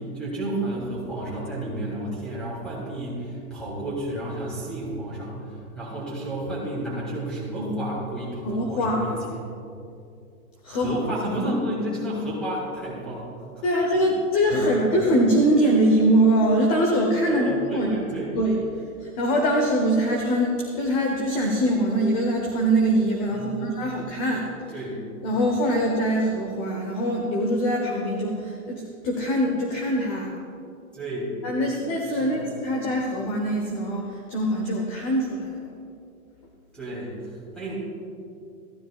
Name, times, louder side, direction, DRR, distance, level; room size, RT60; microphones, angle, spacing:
voice 1, 0.0-9.4 10.7-13.3 13.5-13.6 17.3-18.3 23.3-23.7 24.7-25.0 30.9-31.3 32.1-32.5 36.7-37.7, right 1 dB, ahead, -6 dB, 2.8 m, -31 dB
voice 2, 8.4-9.1 10.6-11.0 13.6-18.6 19.0-24.5 25.2-30.4 31.4-35.6, right 1 dB, 25° left, 1 dB, 0.8 m, -23 dB
15.0 x 11.5 x 2.4 m, 2.5 s
hypercardioid pair, 165°, 44 cm